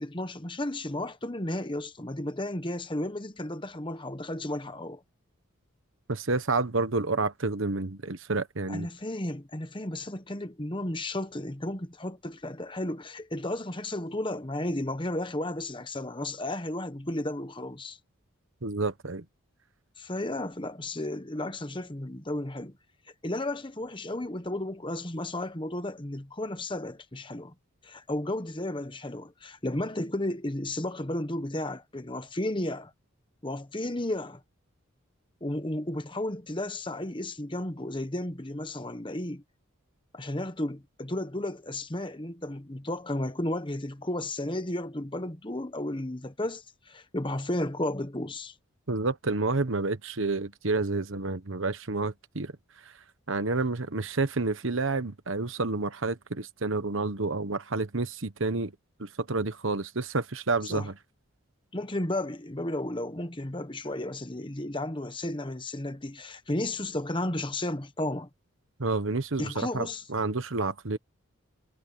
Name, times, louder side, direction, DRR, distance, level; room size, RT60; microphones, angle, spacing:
voice 1, 0.0-5.0 8.7-18.0 20.0-22.8 23.2-27.5 27.8-32.9 33.4-34.4 35.4-39.4 40.1-48.5 60.6-60.9 61.7-68.3 69.4-70.0, left 1 dB, 25° left, 1.2 m, -33 dB
voice 2, 6.1-8.9 18.6-19.2 48.9-52.5 53.3-58.7 59.0-60.9 68.8-71.0, right 3 dB, 65° right, 1.2 m, -29 dB
head